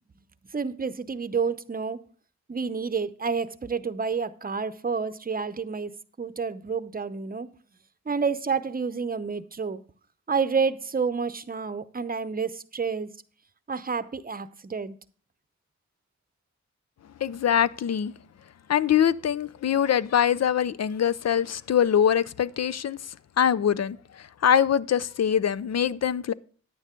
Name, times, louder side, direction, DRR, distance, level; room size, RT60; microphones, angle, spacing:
voice 1, 0.5-2.0 2.5-7.5 8.1-9.8 10.3-13.1 13.7-15.0, right 5 dB, 30° right, 0.7 m, -29 dB
voice 2, 17.2-18.1 18.7-23.0 23.4-24.0 24.4-26.3, left 9 dB, 60° left, 0.5 m, -23 dB
10.5 x 9.2 x 3.7 m
cardioid pair, 55°, 29 cm